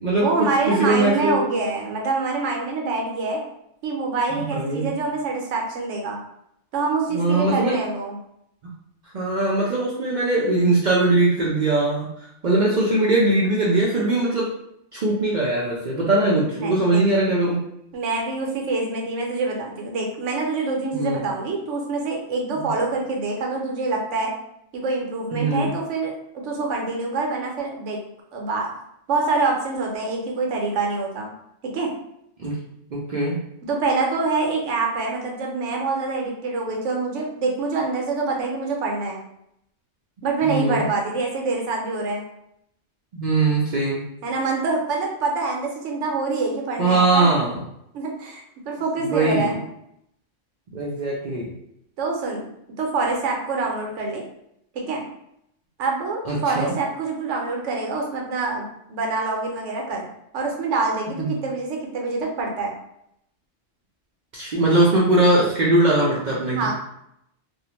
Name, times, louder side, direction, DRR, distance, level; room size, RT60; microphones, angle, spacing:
voice 1, 0.1-3.4 3.8-6.2 6.7-8.2 16.5-17.0 17.9-24.3 24.7-28.0 28.3-28.7 29.1-31.3 31.6-31.9 33.6-39.2 40.2-42.2 44.2-47.3 47.9-49.6 52.0-52.5 52.8-54.2 54.7-55.0 55.8-60.1 60.3-62.7 66.5-66.7, right 3 dB, 75° right, 0 dB, 0.9 m, -25 dB
voice 2, 0.7-1.4 4.3-4.9 7.1-7.8 9.1-12.1 12.4-14.5 14.9-17.6 20.9-21.2 22.6-22.7 25.3-25.7 32.4-32.6 32.9-33.4 40.4-40.8 43.1-44.0 46.8-47.6 49.1-49.6 50.7-51.5 56.3-56.7 61.2-61.3 64.3-66.7, right 2 dB, 60° right, -5 dB, 0.5 m, -21 dB
2.5 x 2.0 x 2.8 m, 0.77 s
omnidirectional pair, 1.3 m